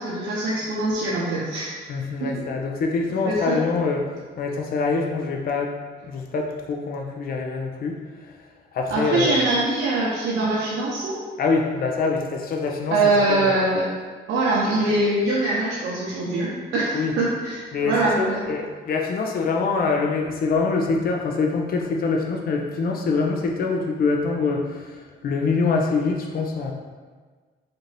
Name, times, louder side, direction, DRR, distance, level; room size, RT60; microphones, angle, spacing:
voice 1, 0.0-1.8 2.2-2.3 3.3-3.6 8.9-11.2 12.9-13.8 14.3-18.5, right 2 dB, 85° right, -7 dB, 0.7 m, -23 dB
voice 2, 1.9-4.1 4.4-5.7 6.1-8.3 8.7-9.5 11.4-13.0 13.3-13.6 16.9-17.1 17.7-26.7, left 4 dB, 50° left, 1 dB, 0.5 m, -25 dB
4.1 x 2.6 x 3.2 m, 1.4 s
cardioid pair, 90°, 20 cm